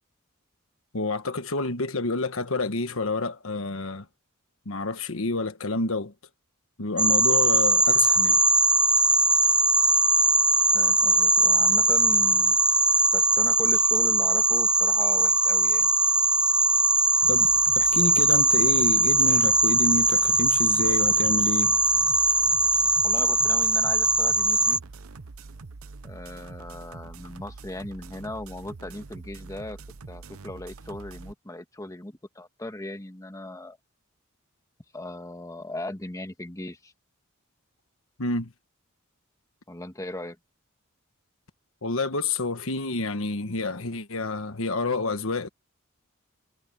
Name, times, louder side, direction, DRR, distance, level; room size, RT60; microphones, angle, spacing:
voice 1, 0.9-4.1 4.6-6.1 6.8-8.4 17.3-21.8 38.2-38.5 41.8-45.5, left 2 dB, 70° left, 1.4 m, -28 dB
sound 1, 7.0-24.8, right 2 dB, 5° right, 0.5 m, -21 dB
voice 2, 10.7-12.6 13.1-15.9 23.0-24.8 26.0-29.8 30.1-33.8 34.9-36.9 39.7-40.4, left 1 dB, 15° left, 1.5 m, -38 dB
sound 2, 17.2-31.3, right 3 dB, 80° right, 0.9 m, -44 dB
head